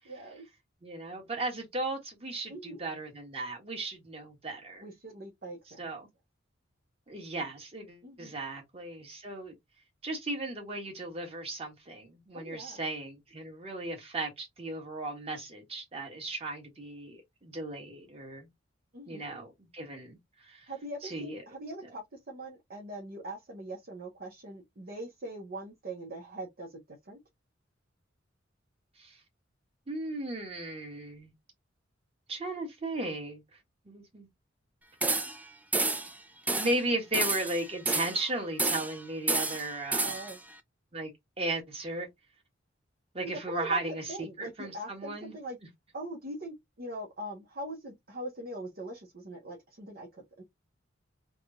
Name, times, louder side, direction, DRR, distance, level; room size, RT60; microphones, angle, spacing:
voice 1, 0.0-0.4 2.5-2.8 4.8-5.8 8.0-8.4 12.3-12.8 18.9-19.3 20.7-27.2 40.0-40.4 43.5-43.8 44.1-45.6 45.9-50.4, right 1 dB, 50° right, 1.0 m, -42 dB
voice 2, 0.8-4.9 5.8-6.1 7.1-9.5 10.0-18.5 19.1-20.7 21.0-21.4 29.0-29.2 29.9-31.3 32.3-33.4 33.8-34.3 36.5-40.1 40.9-42.1 43.1-45.3, right 2 dB, 30° right, 1.5 m, -36 dB
Steel Disk Bounce Multiple, 35.0-35.4 35.7-36.1 36.5-36.8 37.1-38.2 38.6-39.0 39.3-40.4, right 3 dB, 10° right, 0.4 m, -30 dB
3.5 x 2.3 x 3.8 m
head